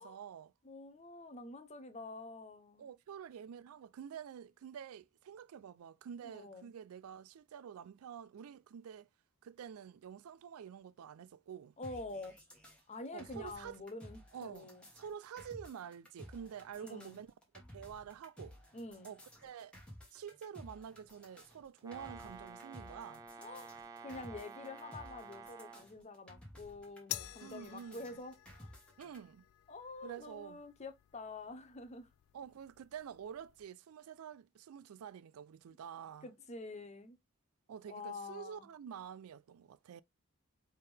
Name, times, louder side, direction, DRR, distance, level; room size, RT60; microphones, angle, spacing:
voice 1, 0.0-0.5 2.8-9.1 9.4-11.7 13.1-13.8 14.3-17.3 17.7-18.6 19.0-19.8 20.1-23.2 27.4-28.0 29.0-29.5 30.0-30.6 32.3-36.3 37.7-40.0, right 8 dB, 90° right, 0.4 m, -48 dB
voice 2, 0.6-2.9 6.2-6.7 11.8-12.4 12.9-14.8 16.8-17.2 18.7-19.1 23.4-23.7 24.0-28.7 29.7-32.1 36.2-37.2 37.9-38.7, left 3 dB, 30° left, 0.7 m, -47 dB
sound 1, 11.8-29.2, equal, 5° left, 1.3 m, -55 dB
Brass instrument, 21.8-25.9, right 4 dB, 15° right, 0.6 m, -51 dB
sound 2, 27.1-33.7, left 16 dB, 75° left, 0.3 m, -50 dB
4.4 x 3.6 x 3.3 m
head